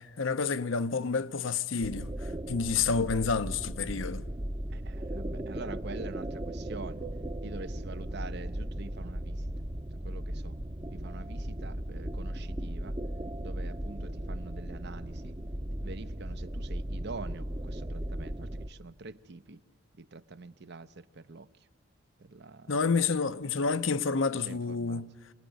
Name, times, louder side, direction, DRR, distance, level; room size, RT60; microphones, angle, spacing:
voice 1, 0.0-2.1 2.5-4.2 22.7-25.1, left 5 dB, 70° left, 0.7 m, -29 dB
sound 1, 1.8-18.7, right 1 dB, 25° right, 0.8 m, -37 dB
voice 2, 4.7-7.0 7.4-9.5 9.9-10.6 10.9-13.0 13.4-15.4 15.7-19.6 19.9-21.5 22.2-22.8 24.3-25.0, right 3 dB, 60° right, 0.8 m, -45 dB
26.5 x 18.5 x 9.4 m
head